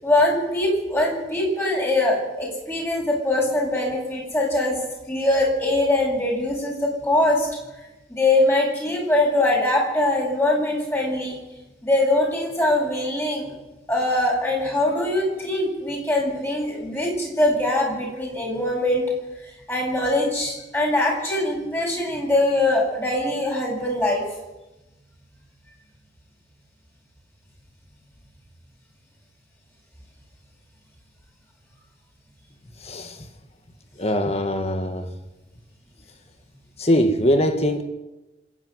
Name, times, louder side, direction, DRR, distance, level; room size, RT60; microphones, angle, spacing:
voice 1, 0.0-4.8 5.1-7.5 8.1-11.4 11.8-13.5 13.9-19.0 19.7-24.2, left 1 dB, 15° left, 8.0 m, -22 dB
voice 2, 32.8-33.3 34.0-35.1 36.8-37.8, equal, 35° left, 1.7 m, -22 dB
26.5 x 11.0 x 9.6 m
head